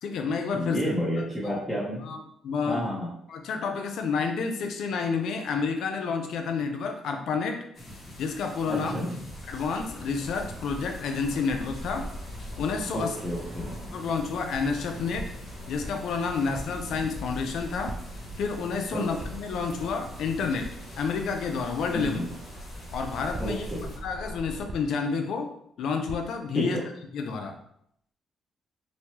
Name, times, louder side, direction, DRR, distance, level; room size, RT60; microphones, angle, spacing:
voice 1, 0.0-0.8 1.4-1.6 2.0-2.9 3.3-7.6 8.2-8.9 9.5-12.1 12.6-13.2 13.9-15.3 15.7-18.0 18.4-22.2 22.9-25.5 25.8-26.8 27.1-27.5, left 5 dB, 75° left, 5 dB, 0.4 m, -29 dB
voice 2, 0.5-2.0 2.7-3.1 8.7-9.2 12.9-13.7 18.9-19.1 21.9-22.3 23.4-23.8 26.5-26.8, equal, 5° right, -6 dB, 0.8 m, -30 dB
sound 1, 7.7-24.0, left 1 dB, 50° left, 1.2 m, -45 dB
sound 2, 9.3-24.7, equal, 90° right, 0.6 m, -42 dB
sound 3, 15.2-15.5 16.5-16.8 17.9-18.3 19.2-19.6 20.6-20.8 22.0-22.2 23.3-23.8 24.7-25.0 26.1-26.3, right 1 dB, 55° right, 0.4 m, -40 dB
3.1 x 2.2 x 2.8 m, 0.70 s
cardioid pair, 90°, 0 cm